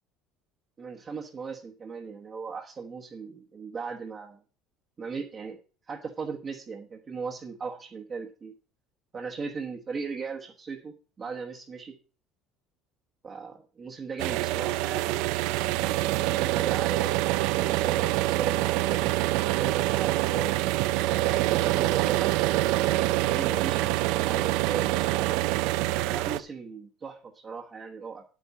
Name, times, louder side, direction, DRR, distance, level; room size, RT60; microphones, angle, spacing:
voice 1, 0.8-4.4 5.0-5.6 5.9-8.5 9.1-11.9 13.2-15.2 15.7-17.2 17.6-19.0 19.5-20.6 21.2-22.5 23.1-23.9 24.1-25.4 26.1-28.2, right 5 dB, 25° right, -1 dB, 1.2 m, -38 dB
sound 1, 14.2-26.4, right 17 dB, 70° right, 0.6 m, -25 dB
11.0 x 8.4 x 4.2 m, 0.37 s
cardioid pair, 165°, 0 cm